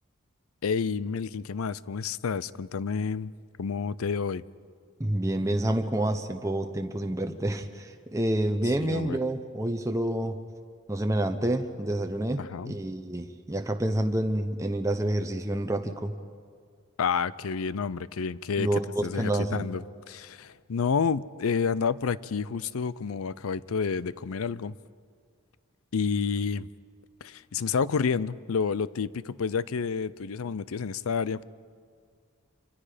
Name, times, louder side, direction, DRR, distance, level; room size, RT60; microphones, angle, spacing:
voice 1, 0.6-3.3 3.6-4.4 8.8-9.2 12.4-12.8 17.0-24.7 25.9-26.7 27.2-31.4, left 5 dB, 90° left, 0.5 m, -29 dB
voice 2, 5.0-10.4 10.9-16.1 18.6-19.6, right 1 dB, 15° right, 0.8 m, -28 dB
26.0 x 24.5 x 5.0 m
head